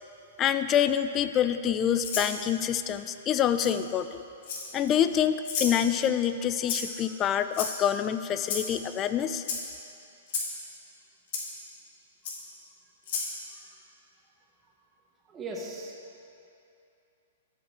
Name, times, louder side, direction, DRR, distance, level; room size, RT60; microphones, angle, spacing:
voice 1, 0.4-4.2 4.7-9.4, left 9 dB, 30° left, 11 dB, 0.4 m, -26 dB
Rattle (instrument), 2.0-2.3 3.6-3.7 4.4-4.9 5.4-5.8 6.7-7.0 7.5-8.0 8.4-8.7 9.4-9.6 10.3-10.5 11.3-11.4 12.2-12.4 13.0-13.3, left 5 dB, 55° left, 1.8 m, -32 dB
voice 2, 6.8-7.2 13.5-13.7 14.6-16.0, right 2 dB, 20° right, -2 dB, 1.4 m, -42 dB
14.0 x 5.4 x 4.3 m, 2.7 s
hypercardioid pair, 130°, 0 cm